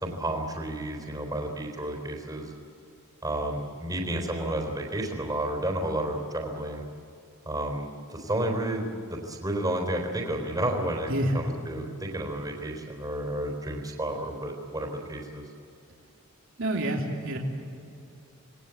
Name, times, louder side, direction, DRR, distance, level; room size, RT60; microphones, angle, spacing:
voice 1, 0.0-2.5 3.2-6.8 7.5-15.4, right 1 dB, 20° right, 2 dB, 3.9 m, -31 dB
voice 2, 11.1-11.5 16.6-17.4, right 1 dB, 70° right, 0 dB, 3.3 m, -27 dB
27.5 x 20.5 x 8.3 m, 2.5 s
head